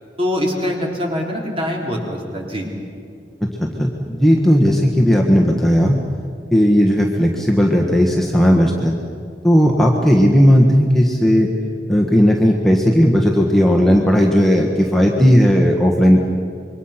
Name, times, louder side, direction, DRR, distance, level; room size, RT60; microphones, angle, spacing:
voice 1, 0.2-2.7, left 1 dB, 35° right, 0 dB, 3.7 m, -23 dB
voice 2, 3.6-6.0 6.5-9.0 9.4-11.5 11.9-16.2, equal, ahead, -1 dB, 1.5 m, -15 dB
27.0 x 23.0 x 5.9 m, 2.4 s
head